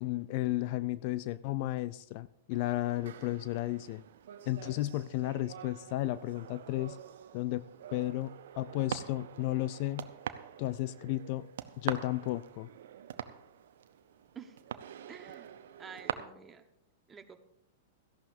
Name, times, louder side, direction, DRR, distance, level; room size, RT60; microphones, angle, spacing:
voice 1, 0.0-4.0 4.5-7.0 7.3-7.6 7.9-10.1 10.6-11.5 11.8-12.7, left 16 dB, 50° left, 16 dB, 0.4 m, -33 dB
sound 1, 2.5-16.1, right 10 dB, 65° right, 0.7 m, -44 dB
voice 2, 15.1-15.5 15.8-16.6 17.1-17.4, right 6 dB, 20° right, 7 dB, 1.3 m, -49 dB
17.0 x 14.0 x 2.7 m, 0.78 s
figure-of-eight pair, 100°, 0 cm